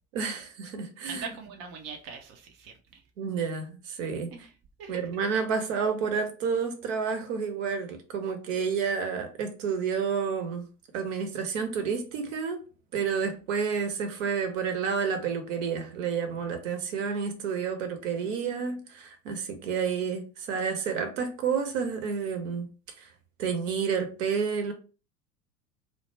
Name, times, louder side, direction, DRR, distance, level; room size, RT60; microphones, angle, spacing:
voice 1, 0.1-1.2 3.2-4.3 4.9-10.7 10.9-12.6 12.9-22.7 23.4-24.7, right 6 dB, 60° right, 0.8 m, -30 dB
voice 2, 1.1-3.0 4.3-4.5 4.8-5.0, right 5 dB, 35° right, 0.4 m, -41 dB
2.1 x 2.0 x 3.2 m
figure-of-eight pair, 80°, 44 cm